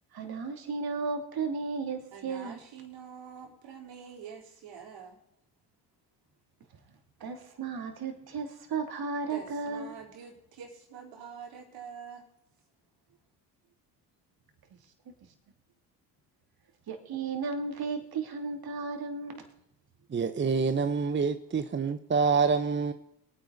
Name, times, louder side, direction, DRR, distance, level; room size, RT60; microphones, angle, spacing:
voice 1, 0.1-2.6 7.2-10.0 16.9-19.5, right 4 dB, 50° right, 3.0 m, -34 dB
voice 2, 2.1-5.2 9.3-12.3, right 7 dB, 65° right, 4.1 m, -46 dB
voice 3, 20.1-22.9, right 5 dB, 25° right, 0.9 m, -27 dB
23.5 x 9.4 x 4.1 m
hypercardioid pair, 60°, 47 cm